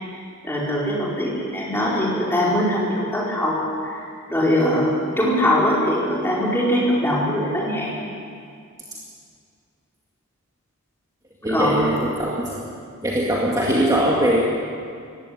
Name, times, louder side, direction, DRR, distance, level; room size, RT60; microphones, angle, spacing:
voice 1, 0.4-4.0 4.3-8.0 11.5-11.9, equal, 10° left, -5 dB, 4.8 m, -22 dB
voice 2, 11.4-12.6 13.0-14.4, right 1 dB, 15° right, -4 dB, 2.1 m, -21 dB
17.5 x 15.5 x 10.0 m, 2.3 s
head